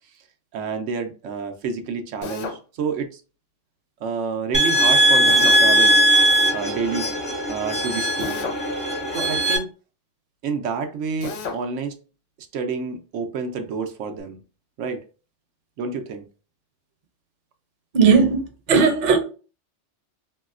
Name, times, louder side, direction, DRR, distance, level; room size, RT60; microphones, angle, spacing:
voice 1, 0.5-3.2 4.0-6.0 6.5-7.1 7.5-8.4 9.1-9.7 10.4-11.9 12.5-14.4 14.8-15.0 15.8-16.2, right 5 dB, 90° right, 1.0 m, -28 dB
Drill, 2.2-2.6 5.2-5.6 8.2-8.6 11.2-11.6, left 5 dB, 85° left, 1.0 m, -31 dB
sound 1, 4.5-9.6, right 1 dB, 35° left, 0.7 m, -19 dB
voice 2, 17.9-19.2, right 5 dB, 45° right, 0.7 m, -17 dB
3.0 x 2.7 x 2.4 m
omnidirectional pair, 1.2 m